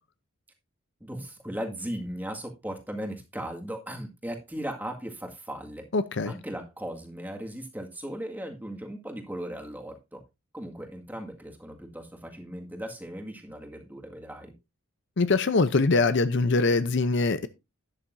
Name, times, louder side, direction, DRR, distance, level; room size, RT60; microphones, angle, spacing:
voice 1, 1.0-5.9 6.3-10.2 10.5-14.5, right 1 dB, 10° right, 1.9 m, -37 dB
voice 2, 5.9-6.3 15.2-17.5, left 3 dB, 55° left, 0.6 m, -23 dB
12.0 x 10.0 x 2.6 m
head